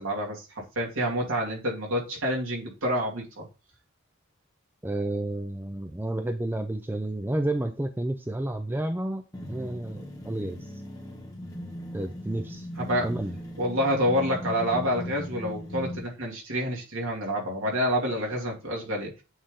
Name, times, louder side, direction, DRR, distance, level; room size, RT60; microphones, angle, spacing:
voice 1, 0.0-3.5 12.8-13.1 13.6-19.1, equal, 80° right, 2.3 m, -28 dB
voice 2, 4.8-9.2 9.5-10.6 11.9-12.7 13.0-13.3, right 1 dB, 10° right, 0.4 m, -30 dB
sound 1, 9.3-16.1, left 1 dB, 15° left, 1.4 m, -38 dB
8.8 x 3.4 x 3.7 m
head